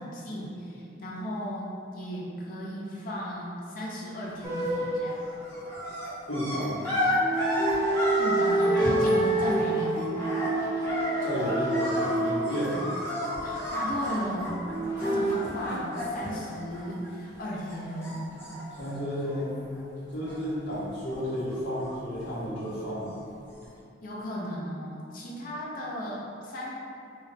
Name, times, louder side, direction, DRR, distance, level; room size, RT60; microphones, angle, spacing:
voice 1, 0.0-5.2 8.2-10.1 13.4-14.6 15.0-18.4 24.0-26.7, equal, 50° left, -4 dB, 0.6 m, -35 dB
sound 1, 4.4-4.8 5.1-17.4 17.7-19.8 20.1-20.8 21.1-22.9 23.6-23.7, equal, 15° left, 0.9 m, -33 dB
sound 2, 4.4-6.1 7.2-13.2 14.6-15.3, right 1 dB, 15° right, 0.6 m, -28 dB
voice 2, 6.3-6.8 11.2-12.8 18.8-19.5 20.1-23.2, equal, 75° left, -11 dB, 1.2 m, -32 dB
2.4 x 2.2 x 3.9 m, 2.5 s
head